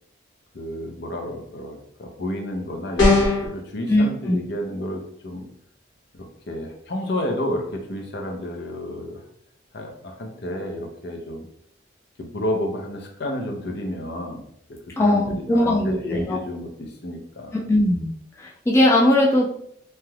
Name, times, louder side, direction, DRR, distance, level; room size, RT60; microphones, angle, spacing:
voice 1, 0.5-5.4 6.1-9.2 9.7-11.5 12.2-14.4 14.9-17.7, left 1 dB, 60° left, 2 dB, 0.6 m, -31 dB
sound 1, 3.0-3.5, left 2 dB, 90° left, 1.1 m, -17 dB
voice 2, 3.9-4.4 15.0-16.4 17.7-18.1 18.4-19.4, left 1 dB, 15° left, -2 dB, 0.4 m, -19 dB
3.3 x 2.8 x 2.3 m, 0.68 s
head